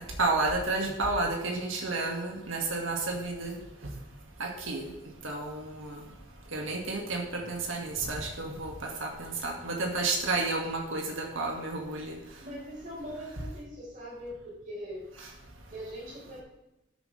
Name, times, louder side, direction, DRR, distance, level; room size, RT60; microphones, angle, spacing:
voice 1, 0.2-3.9 4.4-4.9 5.2-6.0 6.5-12.2 15.2-15.3, right 3 dB, 85° right, 1 dB, 2.2 m, -31 dB
voice 2, 12.4-15.1 15.7-16.4, equal, 40° right, -4 dB, 4.6 m, -41 dB
12.5 x 9.5 x 3.5 m, 0.95 s
head